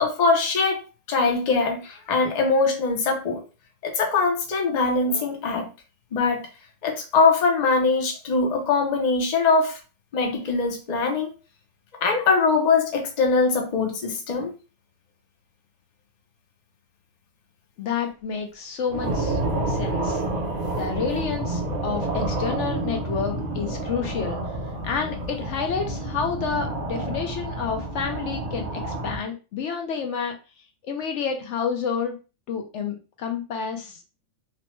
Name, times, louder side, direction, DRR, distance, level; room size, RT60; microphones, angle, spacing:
voice 1, 0.0-3.4 3.8-5.7 6.1-6.4 6.8-9.8 10.1-11.3 12.0-14.5, left 4 dB, 45° left, 2 dB, 0.6 m, -22 dB
voice 2, 17.8-19.4 19.7-20.2 20.7-24.4 24.8-30.3 30.9-32.1 32.5-34.0, left 6 dB, 70° left, 3 dB, 0.9 m, -29 dB
sound 1, 18.9-29.2, right 2 dB, 45° right, 0.7 m, -29 dB
3.0 x 2.1 x 3.0 m, 0.32 s
omnidirectional pair, 1.3 m